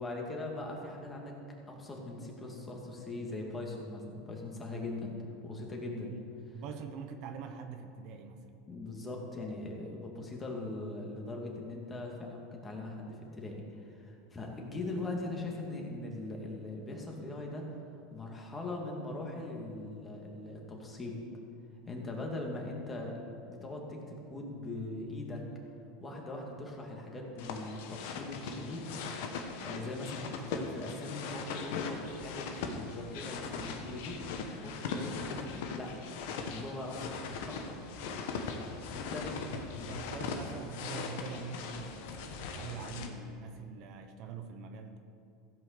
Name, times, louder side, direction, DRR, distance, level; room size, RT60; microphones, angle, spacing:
voice 1, 0.0-1.3 1.7-6.1 8.7-17.7 18.1-21.2 21.9-23.2 23.5-25.5 26.0-28.9 29.6-34.2 34.5-36.0 36.4-37.1 37.5-37.8 38.9-39.3 39.8-39.9, left 2 dB, 20° left, 0 dB, 2.3 m, -40 dB
voice 2, 5.9-6.2 6.5-8.6 39.5-45.0, right 5 dB, 55° right, 7 dB, 0.9 m, -44 dB
sound 1, 27.4-43.1, left 5 dB, 70° left, 1.3 m, -40 dB
15.5 x 5.5 x 6.9 m, 2.7 s
supercardioid pair, 115°, 0 cm